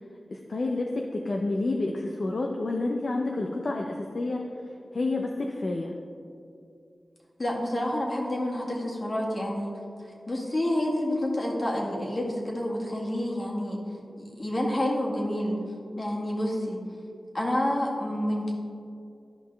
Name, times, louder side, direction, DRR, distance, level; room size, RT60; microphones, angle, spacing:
voice 1, 0.3-4.4 4.9-5.9, left 2 dB, 60° left, 1 dB, 0.6 m, -29 dB
voice 2, 7.4-9.7 10.3-13.8 14.2-15.6 16.0-16.8 17.3-18.5, left 1 dB, 45° left, -3 dB, 2.0 m, -28 dB
13.0 x 5.4 x 3.4 m, 2.4 s
wide cardioid pair, 65°, 0 cm